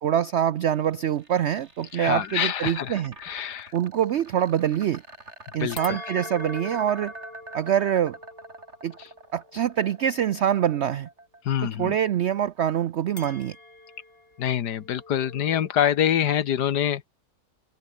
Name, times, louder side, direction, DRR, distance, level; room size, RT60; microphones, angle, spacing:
voice 1, 0.0-3.1 3.7-5.0 5.5-7.1 7.5-8.2 8.8-9.0 9.3-11.1 11.8-13.6, right 10 dB, 75° right, 0.6 m, -25 dB
sound 1, 0.8-12.9, right 2 dB, 40° right, 5.2 m, -45 dB
voice 2, 1.9-3.7 5.6-6.0 11.4-12.0 14.4-17.1, left 9 dB, 75° left, 1.7 m, -25 dB
sound 2, 5.8-10.2 13.2-15.7, left 2 dB, 35° left, 5.0 m, -43 dB
omnidirectional pair, 1.8 m